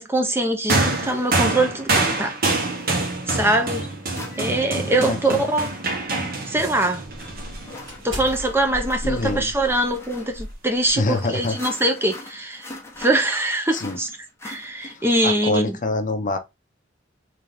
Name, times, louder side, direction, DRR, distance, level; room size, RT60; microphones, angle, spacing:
voice 1, 0.0-2.3 3.3-3.8 4.4-5.7 6.2-7.0 8.0-12.7 13.0-14.1 14.4-15.8, right 1 dB, 15° right, 0.6 m, -23 dB
sound 1, 0.7-8.2 9.2-9.3, right 2 dB, 50° right, 1.2 m, -26 dB
sound 2, 3.2-3.3 4.1-15.2, left 2 dB, 15° left, 1.1 m, -42 dB
sound 3, 3.2-5.9 6.4-6.6 7.1-11.3, equal, 70° right, 2.2 m, -37 dB
voice 2, 4.9-5.4 9.0-9.5 11.0-11.6 13.7-14.0 14.8-16.4, left 2 dB, 45° left, 0.7 m, -25 dB
3.8 x 3.3 x 3.5 m
head